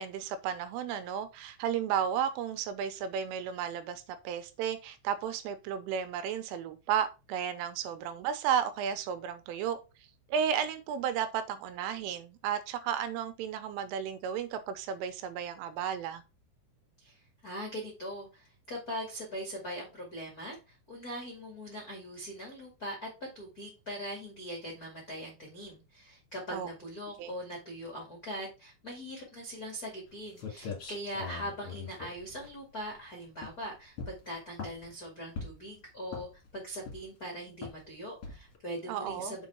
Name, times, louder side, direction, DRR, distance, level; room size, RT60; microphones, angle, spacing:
voice 1, 0.0-9.8 10.3-16.2 26.5-26.7 27.2-27.3 38.9-39.4, right 8 dB, 90° right, 3.3 m, -33 dB
voice 2, 17.0-23.1 23.3-39.4, equal, 80° left, 0.8 m, -41 dB
sound 1, 30.1-30.2 30.4-33.0 33.4-33.6 34.0-34.9 35.4-35.7 36.1-36.5 36.8-37.2 37.6-37.8 38.2-38.6, left 5 dB, 50° left, 1.7 m, -41 dB
7.2 x 4.6 x 4.4 m
omnidirectional pair, 5.7 m